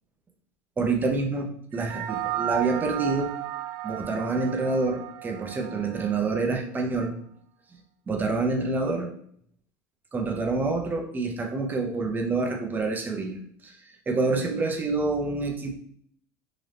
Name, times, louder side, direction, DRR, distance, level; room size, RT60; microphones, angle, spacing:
voice 1, 0.8-3.3 3.8-7.1 8.1-9.1 10.1-13.8 14.1-15.7, right 3 dB, 20° right, 2 dB, 0.8 m, -27 dB
sound 1, 1.7-6.4, right 13 dB, 60° right, 0.4 m, -34 dB
3.8 x 2.8 x 3.4 m, 0.63 s
supercardioid pair, 120°, 8 cm